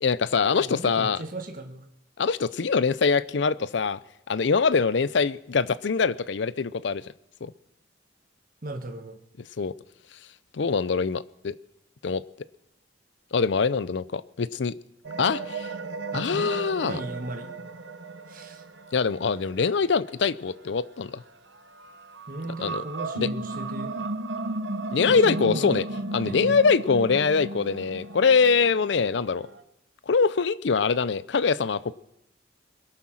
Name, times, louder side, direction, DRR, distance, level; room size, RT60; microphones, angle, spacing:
voice 1, 0.0-1.2 2.2-4.0 4.3-7.0 7.4-7.5 9.6-9.7 10.5-11.6 12.0-12.2 13.3-14.7 15.2-15.7 16.1-17.0 18.9-21.2 22.6-22.8 23.2-23.3 24.9-25.8 26.1-29.5 30.1-32.0, left 5 dB, 75° left, 17 dB, 0.5 m, -23 dB
voice 2, 0.6-1.8 8.6-9.2 16.1-16.5 16.8-17.5 18.3-18.6 22.3-23.9 25.1-25.8 26.2-26.6, right 2 dB, 45° right, 5 dB, 1.3 m, -36 dB
sound 1, 15.0-21.1 21.5-29.6, right 2 dB, 75° right, 0.9 m, -35 dB
22.0 x 9.6 x 6.3 m, 0.82 s
head